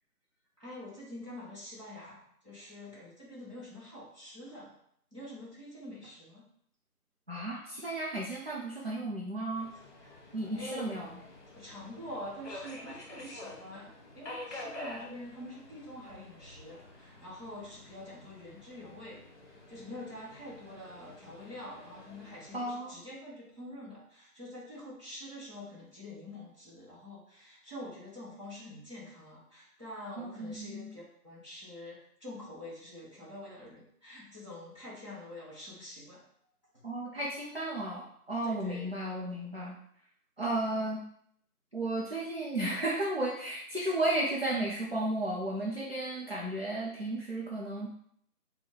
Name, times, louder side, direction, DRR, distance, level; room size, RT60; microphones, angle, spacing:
voice 1, 0.6-4.8 5.1-6.5 10.0-11.1 11.5-19.2 19.5-36.2 38.4-38.9, left 1 dB, 20° right, -10 dB, 1.0 m, -46 dB
voice 2, 7.3-9.7 10.3-11.1 22.5-23.0 30.2-30.9 36.8-39.7 40.4-41.0 41.7-47.9, right 1 dB, 40° right, -5 dB, 0.5 m, -34 dB
Subway metro underground, 9.6-22.6, left 1 dB, 50° left, 1.2 m, -48 dB
4.5 x 2.2 x 3.7 m, 0.67 s
figure-of-eight pair, 165°, 46 cm